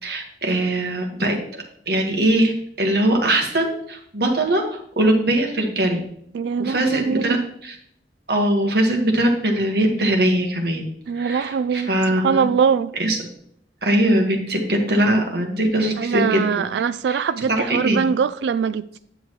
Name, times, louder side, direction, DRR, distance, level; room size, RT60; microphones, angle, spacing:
voice 1, 0.0-2.5 2.8-6.1 6.6-7.4 7.6-7.7 8.3-10.8 11.1-12.5 13.0-13.2 13.8-16.6 17.1-17.2 17.5-18.1, right 1 dB, 60° right, 1.5 m, -21 dB
voice 2, 6.3-7.4 11.1-12.9 16.0-19.0, right 6 dB, 80° right, 0.3 m, -22 dB
9.4 x 6.5 x 3.1 m
head